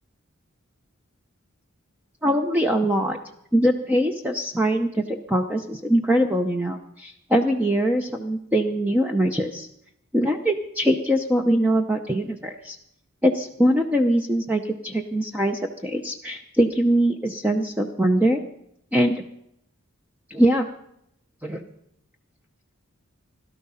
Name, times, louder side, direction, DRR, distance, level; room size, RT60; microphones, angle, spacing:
voice 1, 2.2-3.2 3.5-9.7 10.1-12.8 13.2-18.4 18.9-19.2 20.3-20.7 21.4-21.6, equal, 5° right, 4 dB, 0.7 m, -22 dB
18.0 x 12.5 x 5.6 m, 0.77 s
head